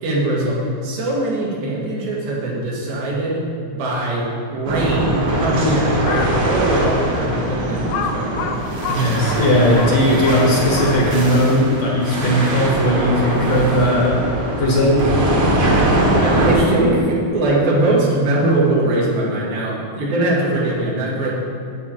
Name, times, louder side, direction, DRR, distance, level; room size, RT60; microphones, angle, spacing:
voice 1, 0.0-8.8 16.2-21.3, right 1 dB, 90° right, -5 dB, 3.7 m, -21 dB
sound 1, 4.7-16.6, right 1 dB, 50° right, 1.7 m, -21 dB
Crow, 5.9-6.4 7.0-7.1 7.9-11.3, left 6 dB, 80° left, 1.7 m, -28 dB
voice 2, 8.9-14.2 14.6-15.1, equal, 55° left, -3 dB, 2.2 m, -17 dB
9.9 x 8.6 x 4.5 m, 2.7 s
omnidirectional pair, 4.1 m